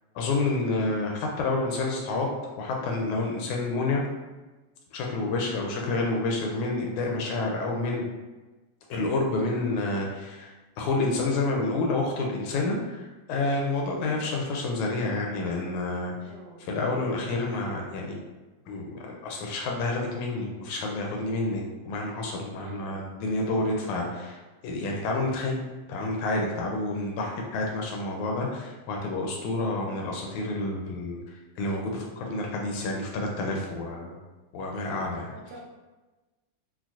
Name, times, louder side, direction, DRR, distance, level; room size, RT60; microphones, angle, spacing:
voice 1, 0.2-2.3 2.6-4.0 4.9-8.1 8.9-16.1 16.6-18.2 18.7-24.4 24.6-25.6 25.9-31.2 31.6-34.2 34.5-35.3, left 2 dB, 80° left, 0 dB, 1.8 m, -29 dB
voice 2, 5.5-5.9 13.7-14.2 16.2-16.7 22.6-23.1 35.3-35.6, right 2 dB, 90° right, -1 dB, 2.2 m, -47 dB
5.8 x 2.1 x 2.3 m, 1.2 s
omnidirectional pair, 3.5 m